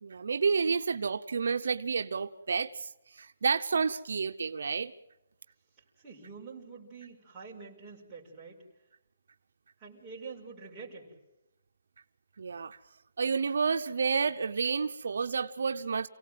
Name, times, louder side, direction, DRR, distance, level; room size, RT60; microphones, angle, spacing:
voice 1, 0.0-4.9 12.4-12.8 13.2-16.1, right 5 dB, 70° right, 7 dB, 0.8 m, -30 dB
voice 2, 6.0-8.6 9.8-11.1, right 4 dB, 10° right, -6 dB, 5.2 m, -46 dB
28.5 x 18.0 x 7.7 m, 0.92 s
hypercardioid pair, 170°, 0 cm